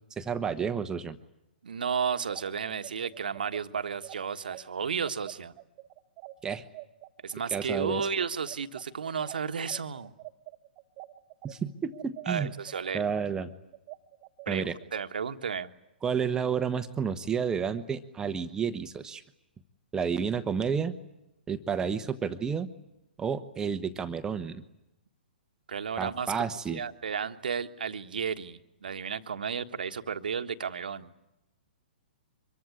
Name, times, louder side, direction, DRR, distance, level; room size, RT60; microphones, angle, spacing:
voice 1, 0.2-1.2 6.4-6.6 7.5-8.1 11.4-12.5 12.9-13.5 14.5-14.7 16.0-19.2 19.9-20.9 21.5-22.7 23.2-24.6 26.0-26.8, right 6 dB, 10° right, 9 dB, 1.2 m, -30 dB
voice 2, 1.6-5.5 7.2-10.1 12.2-13.0 14.4-15.7 25.7-26.3 26.7-31.1, right 6 dB, 60° right, 9 dB, 1.5 m, -33 dB
sound 1, 2.1-11.5 11.9-15.0, right 19 dB, 30° right, 1.2 m, -46 dB
25.5 x 22.5 x 9.8 m, 0.86 s
figure-of-eight pair, 115°, 5 cm